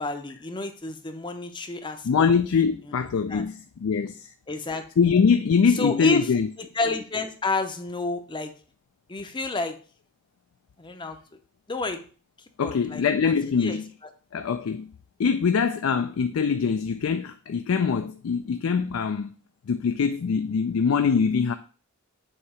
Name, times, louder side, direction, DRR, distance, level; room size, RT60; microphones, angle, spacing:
voice 1, 0.0-2.3 2.9-3.0 3.3-3.5 4.5-4.9 5.7-6.3 6.6-8.5 9.1-9.8 10.8-11.2 11.7-12.0 12.6-13.8, left 3 dB, 20° left, 0.6 m, -30 dB
voice 2, 2.0-3.5 3.8-4.2 5.0-6.5 12.6-13.8 14.3-14.9 15.2-19.3 19.7-21.5, left 6 dB, 70° left, 0.4 m, -23 dB
7.1 x 2.9 x 4.7 m
head